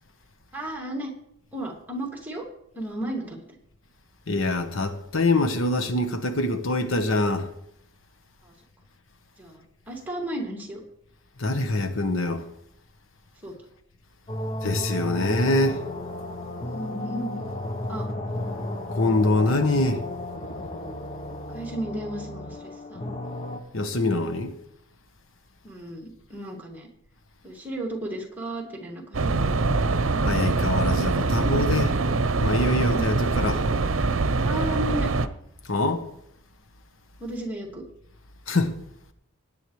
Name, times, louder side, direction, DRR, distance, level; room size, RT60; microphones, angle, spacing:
voice 1, 0.5-1.1 1.5-2.5 2.7-3.6 8.4-8.5 9.4-10.8 13.4-13.5 16.6-17.4 17.9-18.1 21.5-23.0 25.6-26.9 27.4-29.5 34.4-35.1 37.2-37.8, right 1 dB, 10° right, 2.2 m, -34 dB
voice 2, 4.3-7.5 11.4-12.4 14.6-15.8 19.0-20.0 23.7-24.5 30.2-32.0 32.4-33.6 35.7-36.0 38.5-38.7, left 2 dB, 80° left, 1.1 m, -24 dB
sound 1, 14.3-23.6, left 1 dB, 35° left, 1.1 m, -33 dB
sound 2, 29.1-35.3, right 3 dB, 80° right, 0.7 m, -24 dB
19.5 x 9.0 x 3.2 m
head